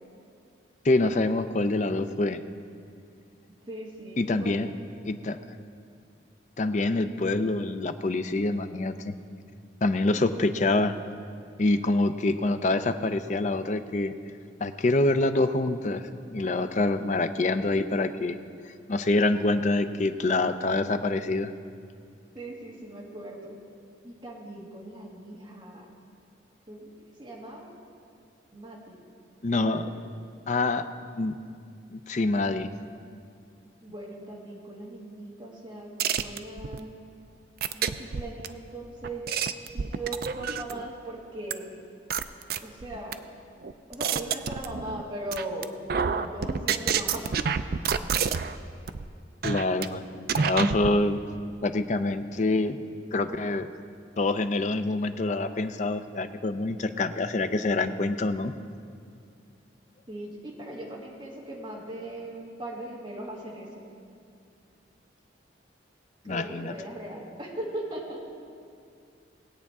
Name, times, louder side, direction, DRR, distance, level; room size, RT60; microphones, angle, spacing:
voice 1, 0.8-2.4 4.2-4.7 5.0-5.4 6.6-9.2 9.8-11.0 11.6-14.1 14.6-16.0 16.3-18.4 18.9-21.5 29.4-29.9 30.5-30.8 31.2-31.3 31.9-32.7 49.4-51.2 51.6-52.8 53.1-53.7 54.2-58.5 66.3-66.7, left 2 dB, 40° left, 10 dB, 0.5 m, -26 dB
voice 2, 3.6-4.6 22.3-23.6 24.0-25.9 26.7-26.9 27.2-27.7 28.5-29.0 29.6-30.0 33.8-36.9 37.7-39.3 39.7-41.7 42.6-43.2 43.9-45.7 46.0-47.3 60.1-63.7 66.2-68.2, right 1 dB, 25° right, -5 dB, 2.1 m, -39 dB
sound 1, 36.0-36.8 37.6-38.5 39.0-40.8 41.5-41.6 42.1-43.1 43.6-45.0 45.3-45.6 45.9-48.6 48.9-49.0 49.4-49.9 50.3-50.9, right 6 dB, 55° right, 0.4 m, -28 dB
20.0 x 8.4 x 3.6 m, 2.3 s
head